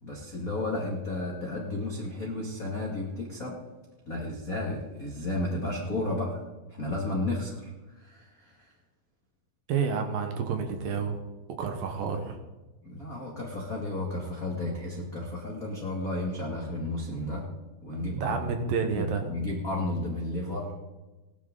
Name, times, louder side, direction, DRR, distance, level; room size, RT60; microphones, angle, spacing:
voice 1, 0.0-3.6 4.0-6.4 6.7-8.7 12.8-17.4 17.8-18.5 18.9-20.7, left 2 dB, 50° left, -3 dB, 1.0 m, -33 dB
voice 2, 9.7-11.2 11.6-12.4 18.1-19.4, right 6 dB, 70° right, 5 dB, 2.3 m, -29 dB
18.0 x 12.0 x 3.9 m, 1.1 s
omnidirectional pair, 5.5 m